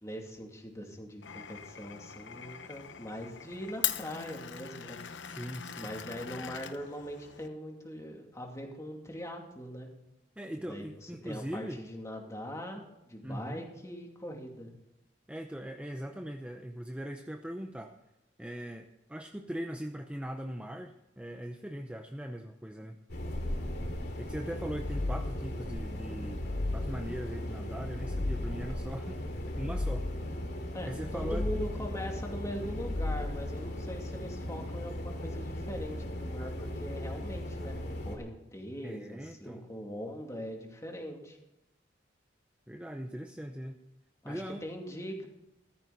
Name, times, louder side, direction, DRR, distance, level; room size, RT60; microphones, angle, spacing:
voice 1, 0.0-5.0 5.8-9.9 10.7-14.7 30.7-41.4 44.2-45.3, equal, 15° left, 1 dB, 2.6 m, -41 dB
Glass, 1.2-7.5, left 10 dB, 80° left, 0.9 m, -40 dB
voice 2, 5.2-5.9 10.4-11.8 13.2-13.6 15.3-17.9 18.4-23.0 24.2-26.4 26.7-29.2 29.6-30.1 30.9-31.5 38.8-39.7 42.7-43.8 44.2-44.6, equal, 5° right, 4 dB, 0.7 m, -40 dB
sound 1, 23.1-38.2, left 1 dB, 65° left, 2.6 m, -38 dB
sound 2, 24.5-25.6 26.1-27.2 27.7-28.8 29.3-30.4 30.9-32.0 32.5-33.6, left 2 dB, 35° left, 0.7 m, -36 dB
15.0 x 13.5 x 4.1 m, 0.90 s
head